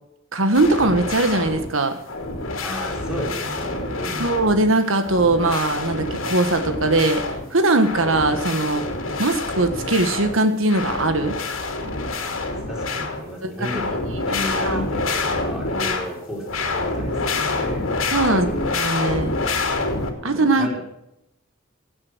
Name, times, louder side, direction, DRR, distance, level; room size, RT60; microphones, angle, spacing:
voice 1, 0.3-2.0 4.2-7.2 7.5-8.8 9.2-11.4 13.4-13.7 14.6-14.8 18.1-19.4 20.2-20.7, right 2 dB, 80° right, 8 dB, 1.5 m, -20 dB
sound 1, 0.5-1.7 2.1-4.7 5.0-7.5 7.7-10.4 10.7-13.3 13.6-16.1 16.4-20.1, left 3 dB, 85° left, 2.7 m, -27 dB
voice 2, 2.6-4.3 12.2-12.4 12.6-17.9 18.3-18.6 18.9-19.3 20.2-20.8, left 1 dB, 5° right, -3 dB, 4.7 m, -33 dB
17.0 x 8.7 x 6.2 m, 0.81 s
head